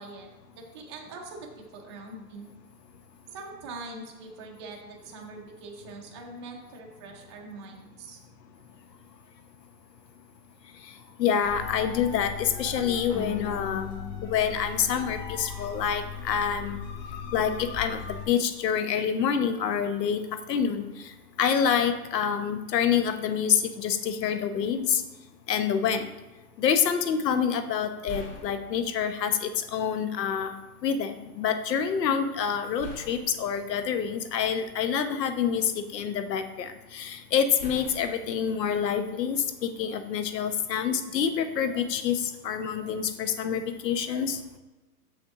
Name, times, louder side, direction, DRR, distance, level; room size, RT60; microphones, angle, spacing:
voice 1, 0.0-2.5 3.3-8.2, right 3 dB, 20° right, -1 dB, 0.5 m, -43 dB
voice 2, 11.2-13.9 14.2-16.8 17.3-18.0 18.3-20.2 20.5-20.8 21.4-25.0 25.5-26.1 26.6-30.5 30.8-44.4, left 7 dB, 85° left, 9 dB, 1.0 m, -27 dB
sound 1, 11.4-18.3, left 6 dB, 30° left, 1.0 m, -38 dB
sound 2, 28.0-29.3 30.3-30.4 32.8-35.0 35.5-36.4 37.6-39.7, left 1 dB, 55° left, 2.4 m, -45 dB
6.6 x 6.1 x 3.6 m, 1.1 s
hypercardioid pair, 165°, 48 cm